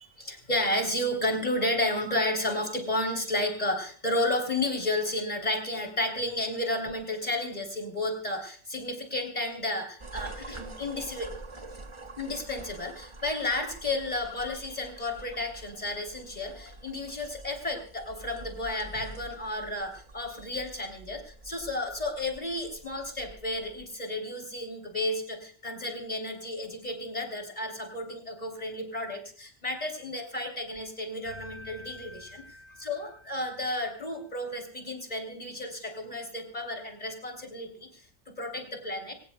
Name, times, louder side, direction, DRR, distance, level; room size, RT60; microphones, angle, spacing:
voice 1, 0.0-11.3 12.2-32.4 32.8-37.9 38.3-39.1, left 1 dB, 30° left, 4 dB, 3.4 m, -32 dB
sound 1, 10.0-23.8, right 2 dB, 25° right, 1.1 m, -47 dB
sound 2, 31.2-34.1, left 1 dB, 65° left, 4.1 m, -48 dB
24.5 x 18.5 x 2.2 m, 0.42 s
omnidirectional pair, 1.4 m